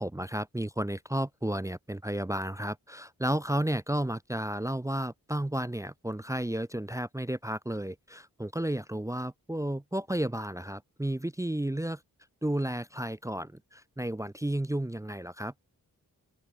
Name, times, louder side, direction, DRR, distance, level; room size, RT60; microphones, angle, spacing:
voice 1, 0.0-12.0 12.4-15.5, right 1 dB, 10° right, 0.6 m, -32 dB
open air
cardioid pair, 60°, 35 cm